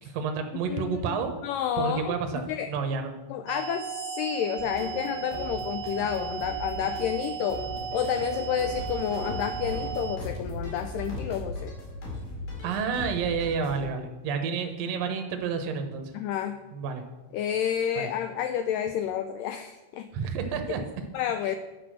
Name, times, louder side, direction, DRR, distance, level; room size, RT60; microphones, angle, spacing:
voice 1, 0.0-1.3 1.8-2.4 2.7-3.1 12.6-16.1 16.7-17.0 17.9-18.1 20.1-20.8 21.4-21.5, right 6 dB, 65° right, 5 dB, 1.6 m, -30 dB
voice 2, 0.6-2.7 3.3-7.6 7.9-11.8 16.1-16.6 17.3-20.1 21.1-21.6, left 9 dB, 85° left, 9 dB, 1.9 m, -30 dB
sound 1, 3.5-10.2, right 8 dB, 85° right, 2.4 m, -36 dB
sound 2, 4.6-11.5, right 1 dB, 20° right, 1.0 m, -40 dB
sound 3, 8.6-13.8, left 2 dB, 60° left, 3.9 m, -38 dB
9.9 x 6.2 x 6.3 m, 1.1 s
omnidirectional pair, 4.4 m